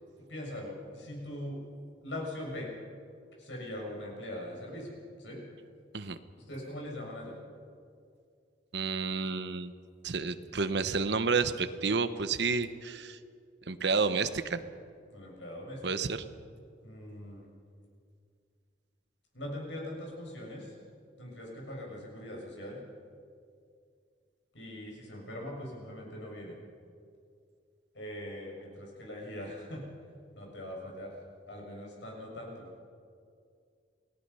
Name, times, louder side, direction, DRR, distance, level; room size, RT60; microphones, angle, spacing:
voice 1, 0.3-1.6 2.0-2.7 3.4-5.4 6.5-7.4 15.1-15.8 16.8-17.5 19.3-20.7 21.2-22.8 24.5-26.6 27.9-29.8 30.3-31.1 31.5-32.7, left 1 dB, 85° left, -1 dB, 7.0 m, -41 dB
voice 2, 8.7-9.7 10.0-13.2 13.7-14.6 15.8-16.2, right 4 dB, 65° right, 11 dB, 1.0 m, -30 dB
28.5 x 19.0 x 5.7 m, 2.3 s
head